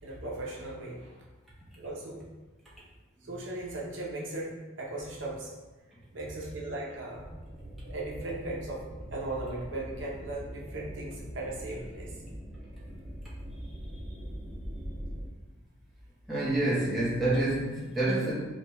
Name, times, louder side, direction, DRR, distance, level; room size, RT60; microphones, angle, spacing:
voice 1, 0.0-1.2 1.8-2.2 3.2-5.5 6.1-7.3 7.8-8.8 9.1-12.1, right 2 dB, 60° right, -3 dB, 0.7 m, -38 dB
sound 1, 7.1-15.2, equal, 45° right, 1.0 m, -42 dB
voice 2, 16.3-18.3, right 2 dB, ahead, -9 dB, 0.9 m, -27 dB
4.9 x 2.2 x 2.9 m, 1.2 s
head